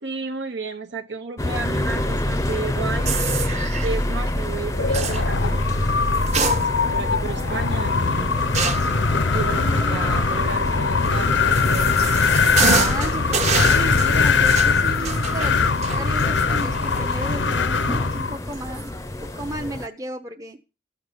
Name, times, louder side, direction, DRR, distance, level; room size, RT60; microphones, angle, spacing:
voice 1, 0.0-3.1 3.8-5.5 6.5-8.3 9.3-12.0, right 4 dB, 70° right, 0.9 m, -32 dB
sound 1, 1.4-19.9, left 1 dB, 15° left, 0.6 m, -28 dB
sound 2, 3.0-4.0 4.9-5.2 6.1-7.0 7.4-7.5 8.5-9.0 11.0-17.1 17.5-17.6 18.5-18.8, right 5 dB, 35° right, 1.0 m, -27 dB
Wind, 4.7-18.4, left 5 dB, 80° left, 0.8 m, -21 dB
voice 2, 9.6-10.3 12.7-18.9 19.2-20.6, right 1 dB, 20° right, 0.7 m, -34 dB
14.0 x 7.2 x 8.0 m
head